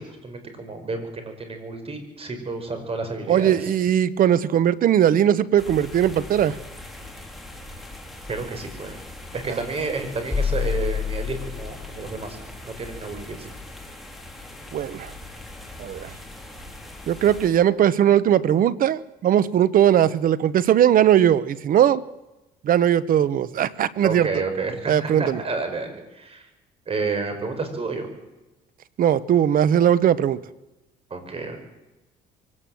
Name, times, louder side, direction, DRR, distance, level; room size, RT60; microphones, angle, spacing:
voice 1, 0.0-3.7 8.3-9.0 9.3-12.4 12.6-13.5 24.0-26.5 26.9-28.1 31.1-31.6, right 3 dB, 35° right, 7 dB, 5.2 m, -30 dB
voice 2, 3.3-6.6 14.7-15.1 15.8-16.1 17.1-22.0 22.6-24.3 24.9-25.4 29.0-30.4, right 10 dB, 55° right, 18 dB, 1.0 m, -19 dB
sound 1, 5.6-17.5, left 1 dB, ahead, 3.9 m, -41 dB
sound 2, 10.3-12.1, left 7 dB, 20° left, 1.3 m, -27 dB
23.5 x 17.5 x 7.8 m, 1.0 s
cardioid pair, 110°, 17 cm